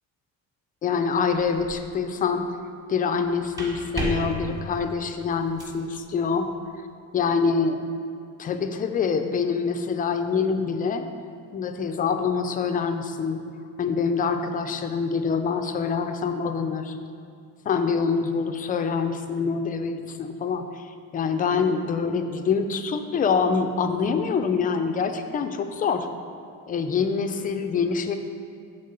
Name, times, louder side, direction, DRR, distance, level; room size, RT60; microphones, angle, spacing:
voice 1, 0.8-2.5 2.9-6.5 7.1-7.8 8.4-11.0 11.5-13.4 13.8-17.0 17.7-20.9 21.1-26.1 26.7-28.2, left 5 dB, 25° left, 7 dB, 0.3 m, -25 dB
sound 1, 1.3-1.9 3.2-5.8, right 1 dB, 10° right, 1.2 m, -34 dB
9.3 x 3.7 x 6.6 m, 2.3 s
cardioid pair, 180°, 33 cm